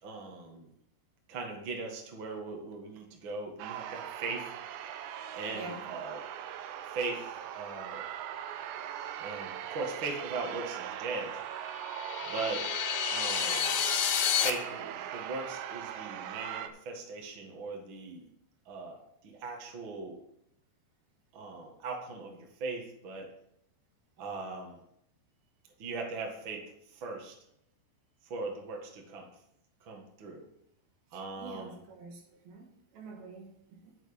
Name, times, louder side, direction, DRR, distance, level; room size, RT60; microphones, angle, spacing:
voice 1, 0.0-0.7 1.3-4.5 5.3-6.2 6.9-8.1 9.2-11.4 12.3-12.7 13.1-13.8 14.4-18.2 18.6-20.2 21.3-23.3 24.2-24.8 25.8-26.6 26.9-27.3 28.2-29.3 29.8-30.4 31.1-31.8, right 3 dB, 50° right, 1.5 m, -39 dB
sound 1, 3.6-16.7, right 10 dB, 85° right, 2.8 m, -40 dB
voice 2, 5.5-5.9 31.1-34.0, right 3 dB, 65° right, 3.1 m, -47 dB
sound 2, 11.7-14.5, left 10 dB, 85° left, 3.0 m, -30 dB
11.0 x 6.9 x 5.2 m
omnidirectional pair, 5.0 m